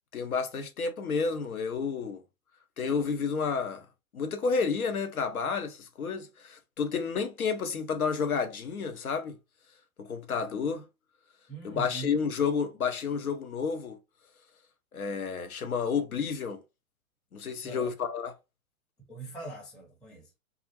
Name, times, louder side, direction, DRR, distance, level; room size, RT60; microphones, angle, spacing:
voice 1, 0.1-2.2 2.8-3.9 4.1-9.4 10.0-10.9 11.6-14.0 14.9-16.6 17.3-18.3, left 5 dB, 90° left, 0.6 m, -30 dB
voice 2, 11.5-12.1 17.6-17.9 19.1-20.3, right 3 dB, ahead, 0.5 m, -42 dB
2.3 x 2.0 x 2.8 m
figure-of-eight pair, 110°, 42 cm